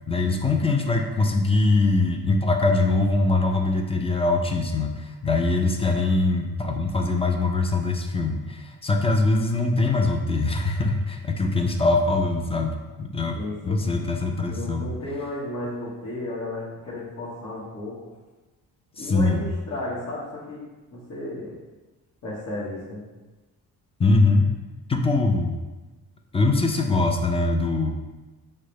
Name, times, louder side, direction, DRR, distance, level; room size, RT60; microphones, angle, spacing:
voice 1, 0.1-13.4 13.6-14.9 19.0-19.4 24.0-24.5 24.9-25.6 26.3-27.9, left 3 dB, 15° left, 3 dB, 0.3 m, -22 dB
voice 2, 13.3-13.8 14.5-18.1 19.0-20.6 20.9-21.6 22.2-23.0, left 1 dB, 50° left, -8 dB, 1.0 m, -33 dB
4.5 x 2.1 x 3.0 m, 1.2 s
cardioid pair, 90°, 36 cm